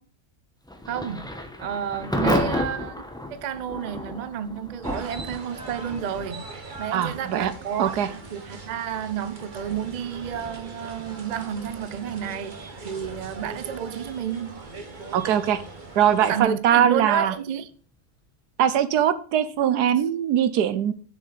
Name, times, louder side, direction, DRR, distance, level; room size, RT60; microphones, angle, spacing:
Thunder / Rain, 0.6-17.4, left 1 dB, 5° left, 0.8 m, -35 dB
voice 1, 0.9-1.3 1.6-3.0 3.3-6.5 6.8-14.6 16.2-17.7, right 8 dB, 60° right, 0.4 m, -31 dB
sound 1, 4.8-16.4, right 3 dB, 35° right, 1.3 m, -41 dB
voice 2, 6.9-7.5 7.8-8.1 15.1-15.6 16.0-17.3 18.6-20.9, right 9 dB, 90° right, 1.3 m, -21 dB
7.1 x 7.1 x 4.0 m
omnidirectional pair, 1.6 m